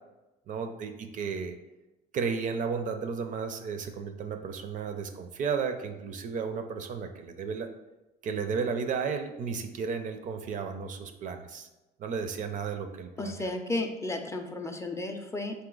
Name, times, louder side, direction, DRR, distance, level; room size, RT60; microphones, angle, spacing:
voice 1, 0.5-1.6 2.1-7.7 8.2-11.7 12.0-13.5, right 5 dB, 50° right, 7 dB, 0.4 m, -33 dB
voice 2, 13.2-15.5, left 2 dB, 15° left, 5 dB, 0.4 m, -33 dB
3.8 x 2.7 x 3.8 m, 1.0 s
cardioid pair, 110°, 17 cm